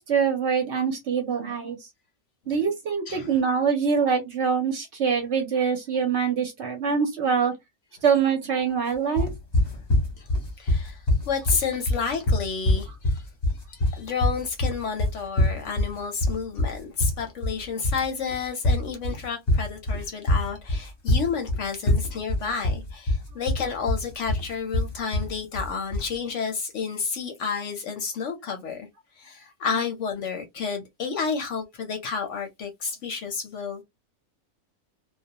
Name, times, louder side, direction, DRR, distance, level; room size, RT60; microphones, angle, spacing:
voice 1, 0.0-1.9 2.5-7.5 8.0-9.3, right 6 dB, 60° right, 0.8 m, -24 dB
sound 1, 9.2-26.1, left 1 dB, 35° left, 0.7 m, -24 dB
voice 2, 10.6-13.2 13.7-28.9 29.2-33.8, left 5 dB, 65° left, 0.8 m, -31 dB
2.3 x 2.1 x 2.7 m
omnidirectional pair, 1.6 m